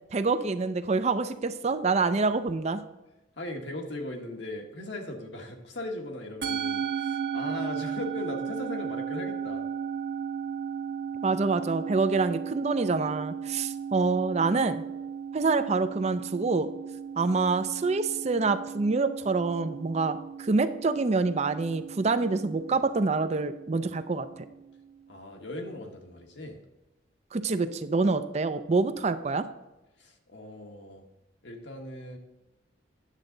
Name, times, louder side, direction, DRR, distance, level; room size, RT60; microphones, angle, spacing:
voice 1, 0.1-2.8 11.2-14.8 15.3-16.7 17.2-24.3 27.3-29.5, right 3 dB, 35° right, 11 dB, 0.4 m, -26 dB
voice 2, 3.4-9.7 25.1-26.6 30.0-31.1 31.4-32.2, left 1 dB, 70° left, 3 dB, 1.4 m, -38 dB
Musical instrument, 6.4-24.9, right 7 dB, 60° right, 1.0 m, -36 dB
9.9 x 7.4 x 3.9 m, 1.0 s
head